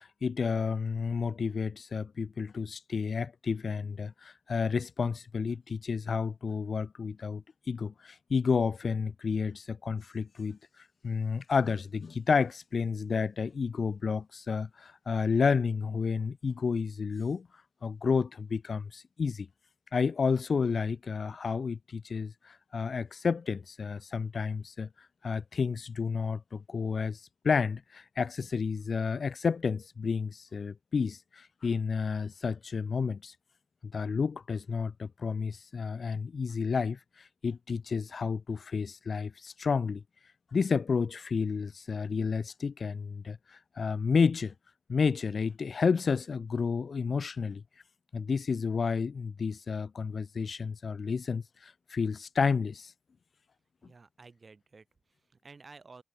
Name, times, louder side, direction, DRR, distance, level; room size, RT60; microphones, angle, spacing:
voice 1, 0.0-10.6 11.0-17.5 17.8-19.5 19.9-24.9 25.2-33.3 33.8-37.0 37.4-40.0 40.5-44.5 44.9-47.6 48.1-52.9, left 5 dB, 85° left, 0.3 m, -31 dB
voice 2, 53.8-56.0, right 4 dB, 60° right, 1.8 m, -53 dB
wide cardioid pair, 70°, 0 cm